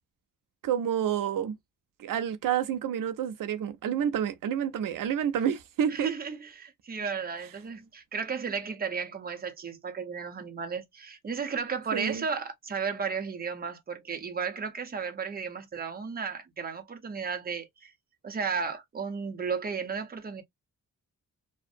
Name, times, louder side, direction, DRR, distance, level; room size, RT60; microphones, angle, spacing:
voice 1, 0.6-1.6 2.0-6.1 11.9-12.2, right 9 dB, 85° right, 0.5 m, -29 dB
voice 2, 5.9-17.9 18.2-20.4, right 5 dB, 30° right, 0.6 m, -34 dB
2.5 x 2.1 x 2.4 m
wide cardioid pair, 145°, 32 cm